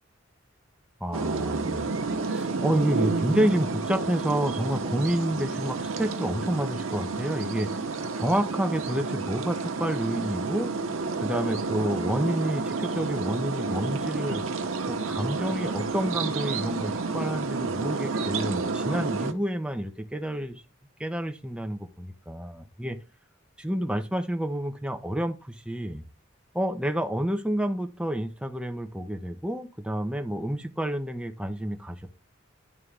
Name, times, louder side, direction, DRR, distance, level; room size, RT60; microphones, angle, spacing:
voice 1, 1.0-7.8 8.1-10.7 11.2-14.5 14.9-20.6 21.0-23.0 23.6-26.0 26.5-32.1, right 1 dB, 5° right, 0.7 m, -29 dB
sound 1, 1.1-19.3, right 4 dB, 90° right, 0.9 m, -30 dB
11.0 x 3.7 x 3.3 m
head